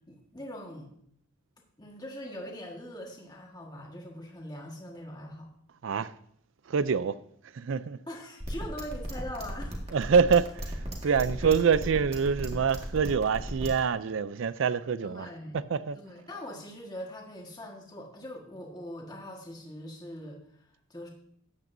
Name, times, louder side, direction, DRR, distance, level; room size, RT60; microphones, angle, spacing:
voice 1, 0.1-0.9 1.8-5.5 8.1-9.8 11.0-11.5 15.0-15.6 15.9-20.4 20.9-21.1, left 1 dB, 20° left, 1.5 m, -42 dB
voice 2, 6.7-7.2 7.5-8.0 9.9-10.8 11.0-15.3 15.5-16.0, right 6 dB, 70° right, 0.4 m, -26 dB
sound 1, 8.4-13.8, equal, 30° right, 1.8 m, -35 dB
13.5 x 9.0 x 2.6 m
head